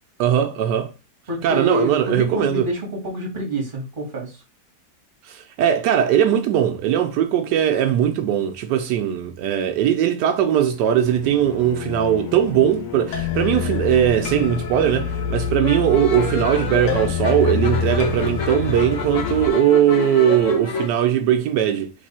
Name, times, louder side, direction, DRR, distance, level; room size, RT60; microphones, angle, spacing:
voice 1, 0.2-0.9 1.4-2.7 5.3-21.9, right 10 dB, 85° right, 1.2 m, -19 dB
voice 2, 1.3-4.4, equal, 30° right, 1.7 m, -27 dB
sound 1, 10.7-19.5, left 7 dB, 75° left, 1.3 m, -27 dB
sound 2, 15.6-20.9, left 5 dB, 55° left, 1.1 m, -28 dB
3.7 x 3.3 x 4.1 m
omnidirectional pair, 1.8 m